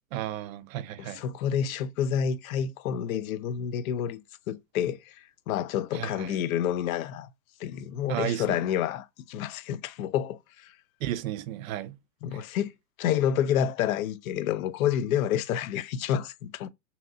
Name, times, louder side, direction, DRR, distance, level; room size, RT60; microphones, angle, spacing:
voice 1, 0.1-1.2 5.9-6.4 8.1-8.6 11.0-12.0 12.3-12.4, right 12 dB, 70° right, 0.6 m, -33 dB
voice 2, 1.0-7.3 7.6-10.7 12.2-12.7 13.0-16.7, left 9 dB, 75° left, 0.6 m, -29 dB
2.9 x 2.7 x 2.5 m
hypercardioid pair, 125°, 42 cm